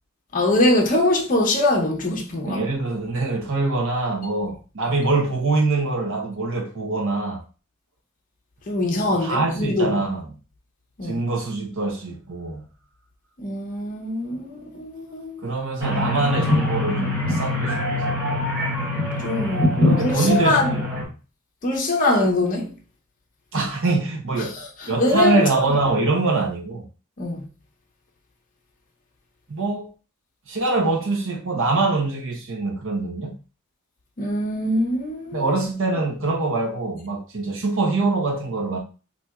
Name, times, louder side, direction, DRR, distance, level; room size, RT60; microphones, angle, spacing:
voice 1, 0.3-2.6 8.7-10.0 11.0-11.2 13.4-15.4 19.2-20.7 21.6-22.7 24.4-25.6 27.2-27.5 34.2-35.4, left 1 dB, 40° left, 0.7 m, -23 dB
voice 2, 2.4-7.4 9.1-10.3 11.0-12.6 15.4-18.1 19.8-21.1 23.5-24.6 24.9-26.9 29.5-29.9 30.5-33.4 35.3-38.8, right 3 dB, 60° right, 0.8 m, -24 dB
sound 1, 15.8-21.0, left 2 dB, 15° right, 1.2 m, -23 dB
4.1 x 2.7 x 2.3 m
head